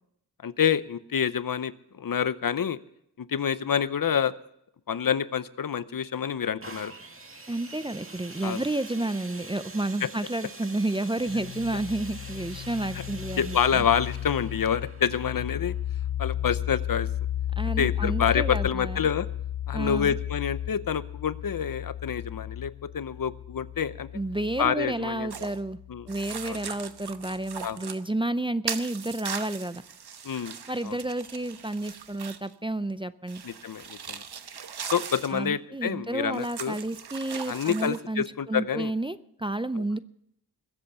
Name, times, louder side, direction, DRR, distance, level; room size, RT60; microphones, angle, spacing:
voice 1, 0.4-2.8 3.2-4.3 4.9-6.9 8.4-8.6 13.4-15.7 16.2-17.1 17.8-19.3 19.7-24.1 24.6-25.3 25.9-26.1 26.4-26.6 27.6-27.8 30.2-30.6 30.8-31.0 33.4-34.2 34.9-36.8 37.5-38.9 39.8-39.9, left 8 dB, 55° left, 15 dB, 0.7 m, -27 dB
sound 1, 6.6-16.3 17.0-17.1, right 3 dB, 30° right, 2.0 m, -45 dB
voice 2, 7.5-13.8 17.6-19.0 19.7-20.2 24.1-25.8 26.1-29.8 30.7-33.4 35.3-40.0, right 2 dB, 15° right, 13 dB, 0.5 m, -31 dB
sound 2, 11.3-26.7, left 12 dB, 90° left, 0.5 m, -34 dB
sound 3, 25.3-25.6 26.1-28.0 28.7-32.5 33.3-35.3 36.3-38.0, right 7 dB, 75° right, 1.1 m, -39 dB
21.0 x 7.9 x 7.0 m, 0.74 s
wide cardioid pair, 90°, 40 cm